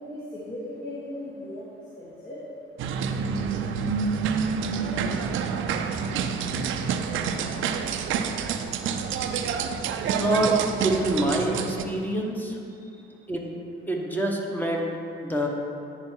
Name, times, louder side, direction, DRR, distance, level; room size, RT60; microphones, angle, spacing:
voice 1, 0.0-1.6 2.0-2.4 12.8-13.0, left 1 dB, 45° left, -9 dB, 2.0 m, -37 dB
sound 1, 2.8-11.8, right 6 dB, 80° right, 0.5 m, -28 dB
voice 2, 10.1-12.6 13.3-13.5 13.9-14.9 15.2-15.5, right 1 dB, 10° left, -1 dB, 1.1 m, -26 dB
9.6 x 4.8 x 4.5 m, 2.6 s
cardioid pair, 90°, 20 cm